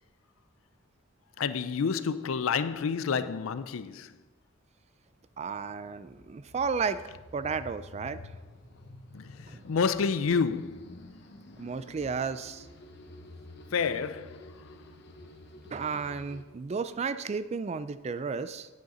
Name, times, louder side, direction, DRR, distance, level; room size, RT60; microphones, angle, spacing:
voice 1, 1.4-4.1 9.1-9.3 9.6-11.0 13.7-14.3, left 5 dB, 85° left, 0.4 m, -29 dB
sound 1, 5.1-16.4, left 1 dB, 55° left, 0.9 m, -50 dB
voice 2, 5.4-7.0 7.3-8.2 9.5-9.6 11.6-12.7 15.6-18.7, right 5 dB, 30° right, 0.3 m, -33 dB
9.6 x 6.4 x 4.2 m
head